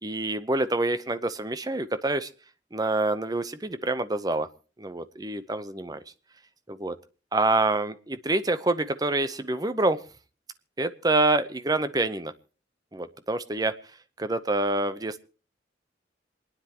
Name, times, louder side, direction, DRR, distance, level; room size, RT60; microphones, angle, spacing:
voice 1, 0.0-2.3 2.7-4.5 4.8-6.0 6.7-7.0 7.3-10.0 10.8-12.3 12.9-13.7 14.2-15.2, right 2 dB, 20° right, 12 dB, 0.7 m, -26 dB
27.5 x 9.9 x 2.9 m, 0.37 s
head